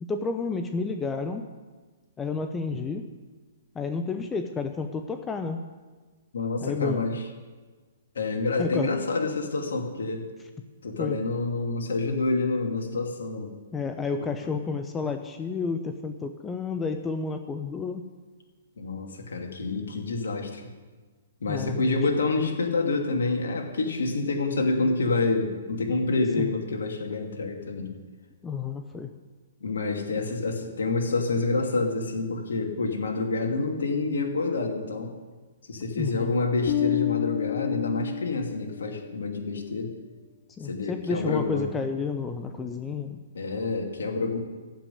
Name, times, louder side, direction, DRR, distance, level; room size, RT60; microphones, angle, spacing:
voice 1, 0.1-1.5 2.2-3.1 3.7-5.6 6.6-7.1 8.6-9.0 11.0-11.2 13.7-18.1 21.5-22.2 26.4-26.5 28.4-29.1 35.9-36.3 40.6-43.2, left 4 dB, 15° left, 7 dB, 0.8 m, -31 dB
voice 2, 6.3-7.2 8.1-10.3 10.8-13.5 14.4-14.5 18.8-20.7 21.4-28.0 29.6-35.1 35.7-39.9 40.6-41.7 43.3-44.4, left 3 dB, 65° left, 2 dB, 2.5 m, -28 dB
Bass guitar, 36.7-39.1, left 14 dB, 45° left, 0.7 m, -29 dB
14.5 x 6.0 x 9.5 m, 1.4 s
figure-of-eight pair, 120°, 0 cm